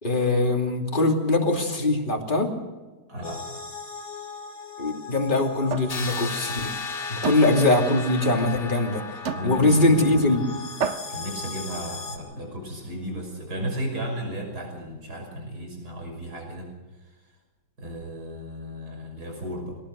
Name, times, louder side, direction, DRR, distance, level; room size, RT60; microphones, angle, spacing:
voice 1, 0.0-2.5 4.8-6.7 7.1-9.0 9.4-10.4, left 2 dB, 30° left, 2 dB, 3.0 m, -22 dB
voice 2, 3.1-3.4 9.3-10.3 11.1-17.2 17.8-19.8, equal, 65° right, 2 dB, 6.5 m, -34 dB
sound 1, 3.2-12.2, left 4 dB, 55° left, 3.1 m, -39 dB
sound 2, 5.7-6.0 6.4-6.6 7.2-7.5 8.4-8.5 9.3-9.5 10.3-10.4 10.8-11.2, right 6 dB, 50° right, 1.1 m, -30 dB
sound 3, 5.9-11.7, left 4 dB, 80° left, 3.1 m, -36 dB
22.5 x 18.5 x 6.6 m, 1.3 s
omnidirectional pair, 1.8 m